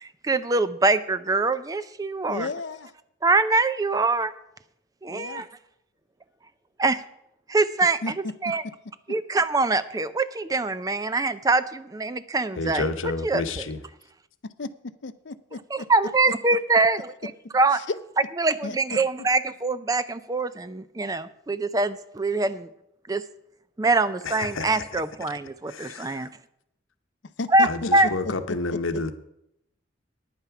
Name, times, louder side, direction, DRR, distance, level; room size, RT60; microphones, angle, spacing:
voice 1, 0.0-2.5 3.2-4.3 5.0-5.5 6.8-7.0 7.5-8.6 9.1-13.7 15.7-17.8 18.4-22.7 23.1-23.2 23.8-26.3 27.5-28.1, right 3 dB, 20° right, 0.4 m, -24 dB
voice 2, 2.3-2.9 5.1-5.4 8.0-8.1 8.4-8.5 14.4-15.9 17.7-18.0 18.6-19.0 27.4-27.7 28.0-28.1 28.5-28.8, left 3 dB, 65° left, 0.6 m, -33 dB
voice 3, 12.6-13.8 24.2-24.8 25.7-26.3 27.7-29.1, left 3 dB, 90° left, 0.9 m, -30 dB
9.8 x 9.0 x 5.9 m
head